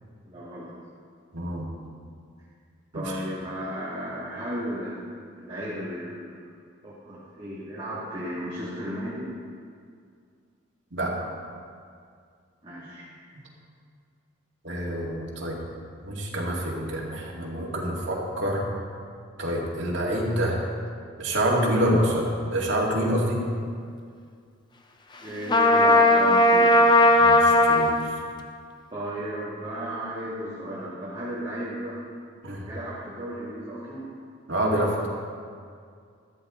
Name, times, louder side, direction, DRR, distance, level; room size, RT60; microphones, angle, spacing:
voice 1, 0.2-0.7 2.9-5.0 5.3-6.4 6.8-9.3 12.6-13.1 25.2-26.9 28.9-32.0 32.7-34.1, equal, 25° right, -9 dB, 2.4 m, -34 dB
voice 2, 1.3-1.7 2.9-3.0 10.9-11.1 14.6-15.6 16.0-18.7 19.4-20.6 21.2-23.4 27.2-28.1 32.4-32.7 34.5-35.1, equal, 60° right, -4 dB, 2.3 m, -27 dB
Trumpet, 25.5-28.0, left 1 dB, 20° left, 0.7 m, -17 dB
14.0 x 13.0 x 3.9 m, 2.2 s
head